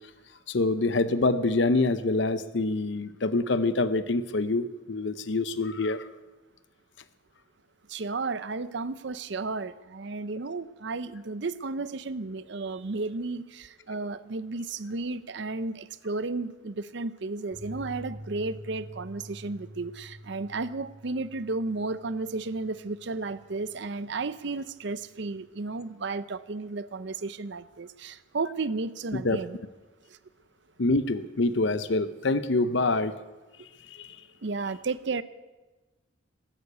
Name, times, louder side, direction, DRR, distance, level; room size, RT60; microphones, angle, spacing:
voice 1, 0.5-6.1 29.1-29.4 30.8-33.2 33.9-34.2, left 2 dB, 60° left, 13 dB, 0.7 m, -26 dB
voice 2, 7.9-29.6 34.4-35.2, right 3 dB, 60° right, 15 dB, 0.6 m, -33 dB
sound 1, 17.5-24.6 24.9-25.0 25.3-25.4, equal, 85° right, 6.2 m, -47 dB
13.5 x 11.5 x 8.2 m, 1.2 s
head